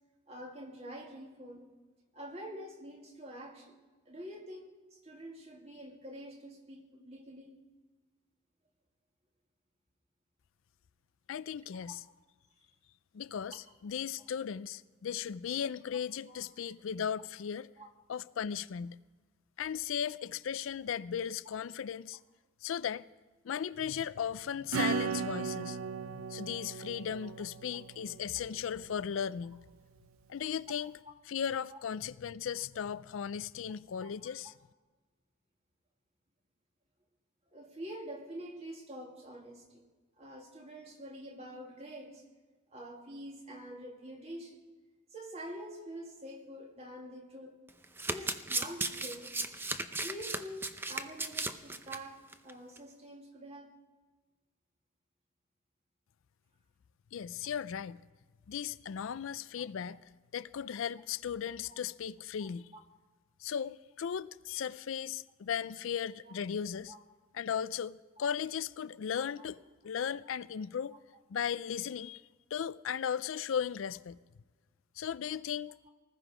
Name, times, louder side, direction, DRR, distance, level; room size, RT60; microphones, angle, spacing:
voice 1, 0.3-1.7 2.1-3.8 4.1-7.6 11.9-12.0 16.3-16.4 17.8-17.9 27.2-27.3 31.7-31.8 34.0-34.1 37.5-39.8 40.2-42.2 42.7-44.6 45.1-47.6 48.1-49.3 50.0-53.8 57.5-57.6 59.9-60.0 61.6-61.7 62.4-62.8 66.2-66.3 66.9-67.0 69.4-69.5, right 1 dB, 30° right, 2.2 m, -46 dB
voice 2, 11.3-12.0 13.1-17.7 18.1-19.0 19.6-22.2 22.6-23.0 23.4-25.8 26.1-29.6 30.3-30.9 31.3-34.5 57.1-58.0 58.5-62.7 63.4-66.9 67.3-71.0 71.3-72.2 72.5-74.2 75.0-75.7, left 8 dB, 70° left, 0.4 m, -36 dB
Acoustic guitar / Strum, 24.7-29.0, right 6 dB, 80° right, 0.5 m, -37 dB
Domestic sounds home sounds, 47.7-52.0 52.3-52.5 52.8-52.9, right 2 dB, 10° right, 0.5 m, -36 dB
19.5 x 14.0 x 5.0 m
head